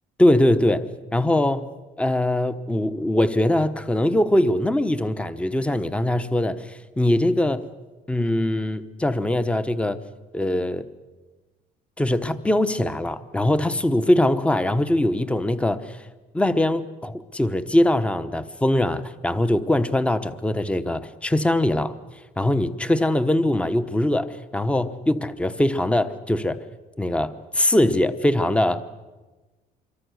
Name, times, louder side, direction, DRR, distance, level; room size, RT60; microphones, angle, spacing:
voice 1, 0.2-0.9 1.1-1.7 2.0-7.7 8.1-10.0 10.3-10.9 12.0-16.0 16.3-22.0 22.4-26.6 27.0-28.8, left 1 dB, 5° left, 11 dB, 1.1 m, -22 dB
25.5 x 23.5 x 6.5 m, 1.2 s
cardioid pair, 110°, 17 cm